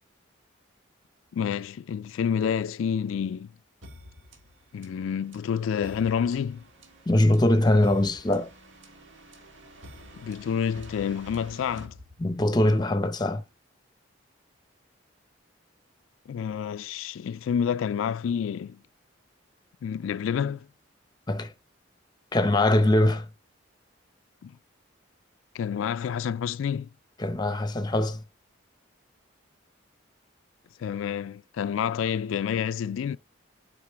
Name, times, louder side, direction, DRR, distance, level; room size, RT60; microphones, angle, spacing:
voice 1, 1.3-3.5 4.7-6.6 10.1-11.9 16.3-18.8 19.8-20.7 24.4-24.6 25.5-26.9 30.8-33.2, left 7 dB, 85° left, 0.3 m, -29 dB
sound 1, 3.8-12.7, equal, 70° right, 1.8 m, -49 dB
voice 2, 7.1-8.5 12.2-13.4 21.3-21.5 22.3-23.3 27.2-28.2, left 1 dB, 20° left, 0.7 m, -22 dB
8.8 x 4.0 x 3.5 m
head